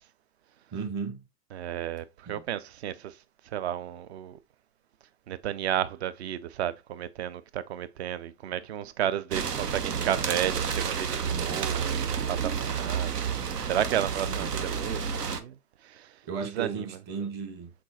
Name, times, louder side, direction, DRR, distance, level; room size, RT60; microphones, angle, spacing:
voice 1, 0.7-1.2 2.3-2.4 11.3-11.7 14.3-14.5 16.2-17.7, right 5 dB, 20° right, 0.9 m, -35 dB
voice 2, 1.5-3.1 3.5-4.4 5.3-15.5 15.8-16.1 16.6-16.9, right 10 dB, 45° right, 0.5 m, -32 dB
sound 1, 9.3-15.4, right 6 dB, 85° right, 0.9 m, -30 dB
4.3 x 4.2 x 2.8 m
hypercardioid pair, 130°, 46 cm